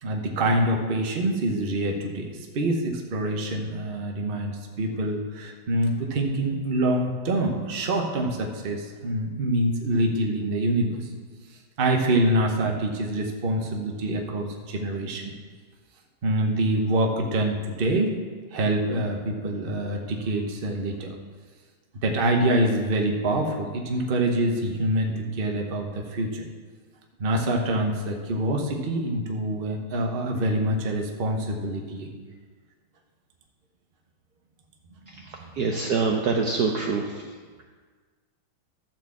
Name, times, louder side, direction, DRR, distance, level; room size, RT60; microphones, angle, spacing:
voice 1, 0.0-11.1 11.8-15.3 16.2-18.1 18.5-21.1 22.0-26.4 27.2-32.1 35.1-35.5, right 1 dB, 35° right, 1 dB, 0.9 m, -25 dB
voice 2, 35.6-37.0, right 4 dB, 65° right, 1 dB, 1.1 m, -24 dB
12.0 x 4.5 x 7.2 m, 1.5 s
omnidirectional pair, 2.3 m